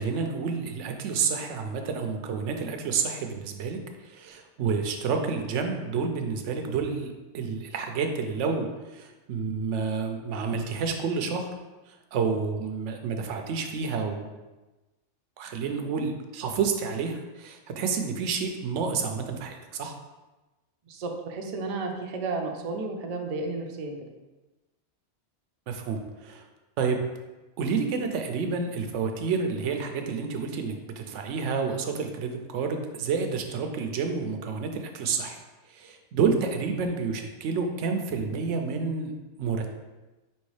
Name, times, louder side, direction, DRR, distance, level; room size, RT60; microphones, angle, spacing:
voice 1, 0.0-11.5 11.9-14.3 15.4-19.9 25.7-26.4 26.8-27.0 27.6-35.4 35.7-39.1 39.4-39.7, right 5 dB, 85° right, 5 dB, 0.9 m, -29 dB
voice 2, 20.9-24.0, right 3 dB, 50° right, 2 dB, 0.5 m, -32 dB
5.3 x 3.0 x 3.2 m, 1.1 s
omnidirectional pair, 1.2 m